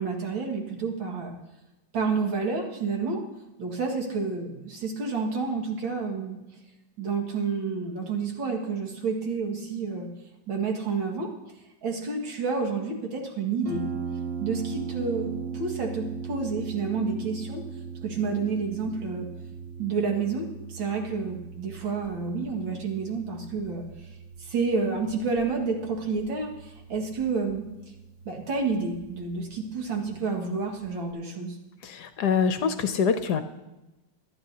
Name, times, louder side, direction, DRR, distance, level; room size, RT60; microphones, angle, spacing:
voice 1, 0.0-1.3 1.9-3.2 3.6-6.4 7.0-10.1 10.5-11.3 11.8-13.9 14.4-17.6 18.0-19.3 19.8-23.8 24.4-27.7 28.3-31.6, right 4 dB, 85° right, 1 dB, 2.7 m, -29 dB
Harp, 13.7-31.1, right 6 dB, 40° right, 1.0 m, -39 dB
voice 2, 31.8-33.4, left 6 dB, 65° left, 9 dB, 1.2 m, -25 dB
24.0 x 10.0 x 2.8 m, 1.0 s
omnidirectional pair, 2.1 m